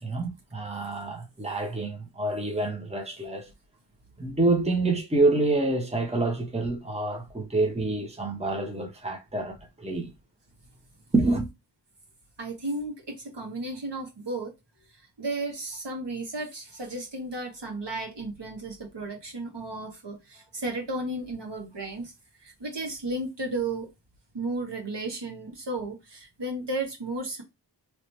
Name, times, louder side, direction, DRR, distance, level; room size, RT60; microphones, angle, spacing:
voice 1, 0.0-3.5 4.2-10.1 11.1-11.5, right 2 dB, 15° right, 1.0 m, -27 dB
voice 2, 12.4-14.5 14.9-22.1 22.4-23.9 24.3-27.4, right 2 dB, 65° right, 1.6 m, -34 dB
3.1 x 2.8 x 3.1 m
wide cardioid pair, 70°, 45 cm